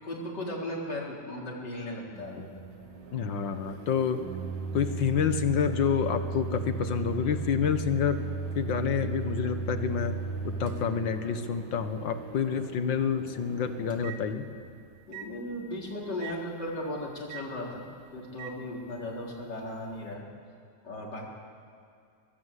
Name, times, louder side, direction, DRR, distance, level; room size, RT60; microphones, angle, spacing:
voice 1, 0.0-2.5 15.1-17.9 18.1-20.2 20.8-21.3, left 1 dB, 65° left, -2 dB, 4.5 m, -36 dB
Microwave oven, 2.1-14.7 15.1-15.3 16.2-16.4 17.3-17.5 18.4-18.5, right 4 dB, 75° right, 2.5 m, -37 dB
voice 2, 3.1-4.3 4.7-8.2 8.6-10.1 10.4-14.5, left 7 dB, 85° left, 9 dB, 2.0 m, -28 dB
24.0 x 19.0 x 8.3 m, 2.4 s
omnidirectional pair, 2.0 m